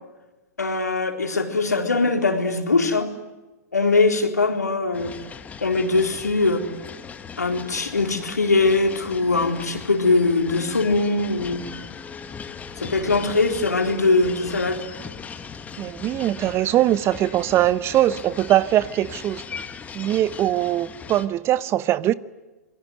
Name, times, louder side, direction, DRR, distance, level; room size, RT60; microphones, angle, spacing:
voice 1, 0.6-3.1 3.7-5.1 5.6-6.7 7.4-11.7 12.8-14.8, left 3 dB, 85° left, 4.0 m, -21 dB
sound 1, 4.9-21.3, left 6 dB, 15° left, 1.9 m, -39 dB
voice 2, 15.8-19.4 19.9-22.1, right 13 dB, 30° right, 1.0 m, -21 dB
27.5 x 22.5 x 9.4 m
figure-of-eight pair, 105°, 9 cm